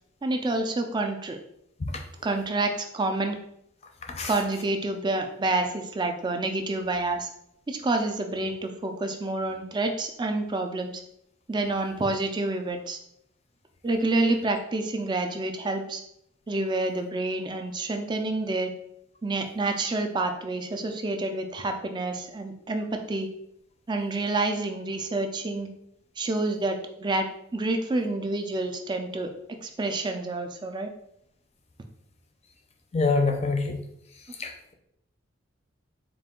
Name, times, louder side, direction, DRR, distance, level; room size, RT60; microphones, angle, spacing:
voice 1, 0.2-1.4 2.2-3.4 4.2-7.3 7.7-11.0 11.5-13.0 13.8-16.0 16.5-18.7 19.2-23.3 23.9-25.7 26.2-27.3 27.5-29.3 29.6-30.9, right 2 dB, 25° right, 5 dB, 0.4 m, -28 dB
voice 2, 32.9-33.8 34.4-34.7, left 3 dB, 35° left, 3 dB, 0.5 m, -25 dB
3.8 x 2.5 x 3.6 m, 0.75 s
head